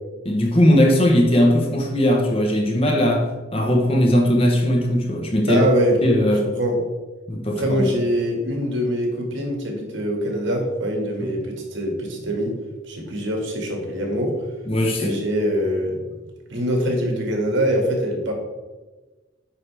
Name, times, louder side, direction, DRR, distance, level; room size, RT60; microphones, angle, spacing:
voice 1, 0.2-5.7 6.0-6.5 7.3-7.9 11.2-11.3 14.7-15.2, equal, 30° left, 1 dB, 1.0 m, -19 dB
voice 2, 5.5-6.0 6.4-6.8 7.5-12.6 12.8-14.5 15.0-16.0 16.5-18.3, equal, 65° right, 1 dB, 1.9 m, -23 dB
9.3 x 5.7 x 3.4 m, 1.2 s
head